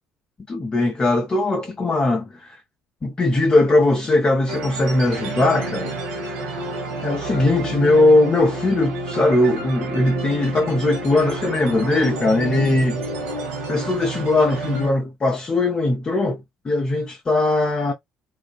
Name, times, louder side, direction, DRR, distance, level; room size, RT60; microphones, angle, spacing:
voice 1, 0.5-2.6 3.0-6.0 7.0-13.0 13.7-17.9, left 2 dB, 25° left, 0.6 m, -20 dB
sound 1, 4.5-14.9, right 2 dB, 65° right, 0.8 m, -30 dB
2.4 x 2.3 x 2.3 m
figure-of-eight pair, 50°, 4 cm